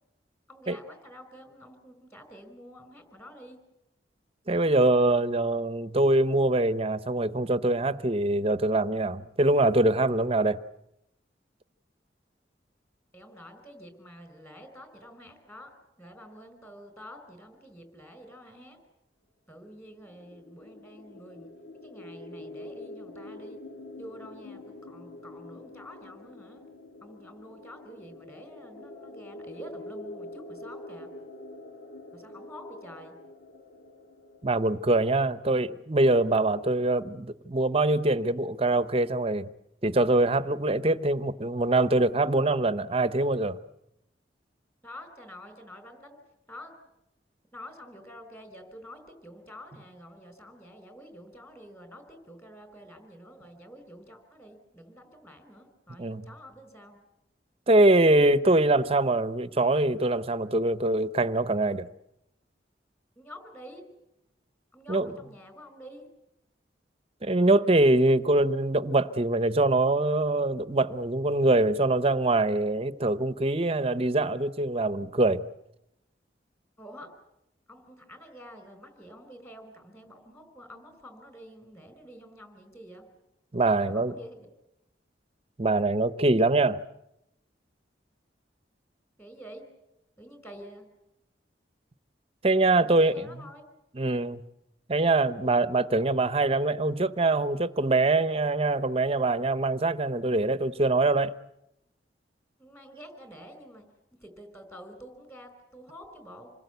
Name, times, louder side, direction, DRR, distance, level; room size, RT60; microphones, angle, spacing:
voice 1, 0.5-3.6 13.1-18.8 19.5-21.5 21.8-23.6 24.0-26.6 27.0-31.1 32.1-33.1 44.8-46.2 46.5-46.7 47.5-57.0 63.1-63.8 64.7-66.1 76.8-77.1 77.7-83.1 83.8-84.5 89.2-89.6 90.2-90.9 92.9-93.7 102.6-103.9 104.2-106.5, equal, 15° left, 4.9 m, -48 dB
voice 2, 4.5-10.6 34.4-39.5 39.8-43.6 56.0-56.2 57.7-61.9 64.9-65.1 67.2-75.5 83.5-84.1 85.6-86.8 92.4-93.3 94.0-94.4 94.9-101.3, right 2 dB, 35° right, 0.9 m, -24 dB
sound 1, 20.0-35.7, left 2 dB, 75° left, 2.8 m, -45 dB
27.5 x 21.0 x 8.1 m
head